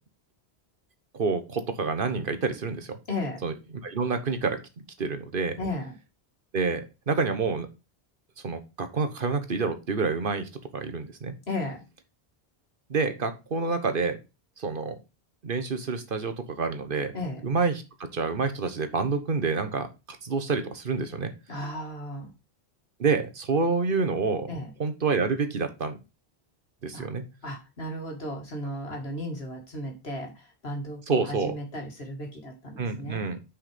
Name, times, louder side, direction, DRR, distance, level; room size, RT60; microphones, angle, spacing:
voice 1, 1.1-3.0 3.4-3.5 3.8-4.6 5.0-5.6 6.5-7.7 8.4-11.3 12.9-14.2 14.6-15.0 15.4-17.1 17.4-21.3 23.0-24.5 24.8-26.0 26.8-27.2 31.1-31.5 32.8-33.4, right 4 dB, 55° right, 8 dB, 1.2 m, -28 dB
voice 2, 3.1-3.4 5.6-6.0 11.5-11.8 17.1-17.4 21.5-22.3 24.5-24.7 26.9-27.1 27.4-33.2, left 1 dB, 75° left, 2 dB, 2.3 m, -35 dB
6.2 x 4.9 x 5.1 m, 0.27 s
omnidirectional pair, 1.1 m